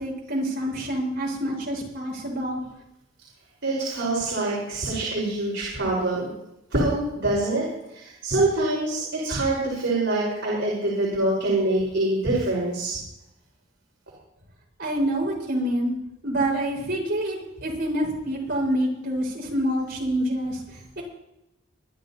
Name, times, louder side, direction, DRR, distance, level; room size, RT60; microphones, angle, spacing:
voice 1, 0.0-2.6 14.8-15.9 16.2-20.6 21.0-21.1, right 1 dB, 55° right, -3 dB, 5.3 m, -27 dB
voice 2, 3.6-6.3 6.7-12.9, right 2 dB, 70° right, -6 dB, 4.9 m, -25 dB
24.0 x 12.0 x 2.9 m, 0.85 s
head